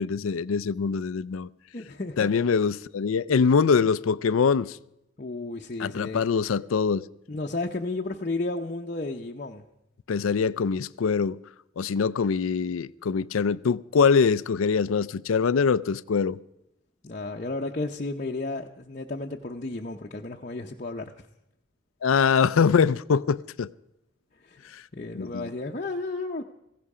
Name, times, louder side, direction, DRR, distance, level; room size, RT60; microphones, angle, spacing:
voice 1, 0.0-1.5 2.2-4.8 5.8-7.1 10.1-11.4 11.8-16.4 22.0-23.7 24.7-24.8 25.1-25.5, left 5 dB, 85° left, 0.4 m, -23 dB
voice 2, 1.7-2.3 5.2-6.2 7.3-9.6 17.0-21.3 24.4-26.4, left 2 dB, 40° left, 0.8 m, -33 dB
16.0 x 16.0 x 4.9 m
head